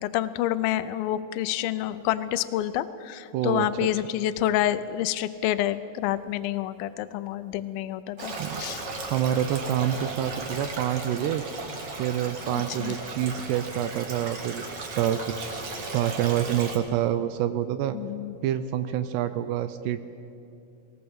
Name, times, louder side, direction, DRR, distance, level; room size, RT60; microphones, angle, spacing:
voice 1, 0.0-8.3 8.6-8.8 12.5-12.9 17.9-18.4, left 12 dB, 85° left, 13 dB, 2.1 m, -28 dB
voice 2, 3.3-3.9 8.4-8.6 9.1-11.4 12.0-14.6 14.9-15.5 15.9-18.0 18.4-20.1, right 11 dB, 80° right, 11 dB, 2.7 m, -27 dB
Stream, 8.2-16.8, right 3 dB, 45° right, 2.4 m, -36 dB
20.5 x 18.5 x 7.9 m, 2.7 s
omnidirectional pair, 5.0 m